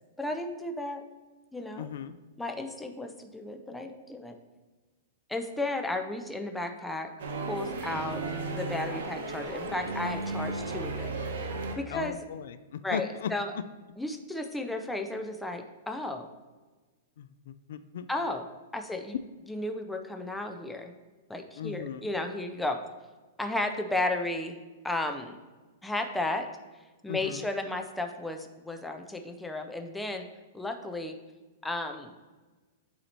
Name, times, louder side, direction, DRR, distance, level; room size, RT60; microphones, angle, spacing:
voice 1, 0.2-1.0 1.5-1.9 2.4-4.4 5.3-7.1 7.5-8.2 8.6-11.1 11.8-12.2 12.8-13.5 14.0-16.3 18.1-18.5 18.7-19.2 19.5-20.9 21.3-22.8 23.4-24.6 24.8-25.4 25.8-26.5 27.0-30.3 30.5-31.2 31.6-32.1, left 2 dB, 5° left, 5 dB, 0.4 m, -33 dB
voice 2, 1.8-2.2 11.9-13.6 17.2-18.1 21.6-22.1 27.1-27.5, left 8 dB, 70° left, 12 dB, 0.3 m, -37 dB
Orchestra Warm Ups, 7.2-11.7, right 3 dB, 70° right, 0.9 m, -34 dB
8.0 x 2.8 x 4.3 m, 1.3 s
hypercardioid pair, 150°, 0 cm